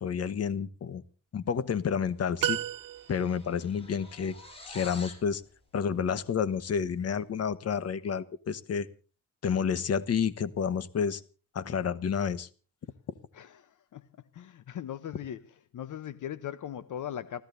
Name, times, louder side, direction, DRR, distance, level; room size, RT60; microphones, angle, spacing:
voice 1, 0.0-1.0 1.3-2.6 3.1-4.3 4.7-5.4 5.7-8.9 9.4-11.2 11.5-12.5, left 7 dB, 50° left, 1.1 m, -30 dB
sound 1, 2.1-2.3 2.6-5.3, left 1 dB, 15° left, 5.3 m, -48 dB
sound 2, 2.4-3.5, right 14 dB, 75° right, 0.6 m, -32 dB
voice 2, 13.3-14.1 14.3-15.4 15.7-17.4, left 10 dB, 65° left, 0.8 m, -39 dB
30.0 x 14.0 x 2.6 m
wide cardioid pair, 160°, 32 cm